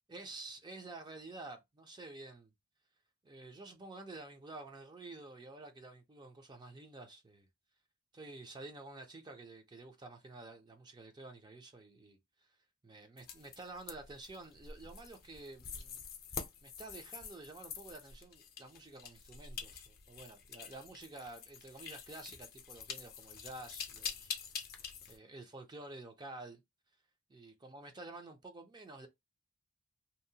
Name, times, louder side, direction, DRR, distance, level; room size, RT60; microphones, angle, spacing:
voice 1, 0.1-2.5 3.2-7.5 8.1-12.2 12.8-16.0 16.3-24.3 25.1-26.6 27.3-29.1, right 2 dB, 20° right, 0.4 m, -50 dB
sound 1, 13.2-25.2, left 7 dB, 45° left, 0.5 m, -46 dB
2.7 x 2.1 x 2.7 m
head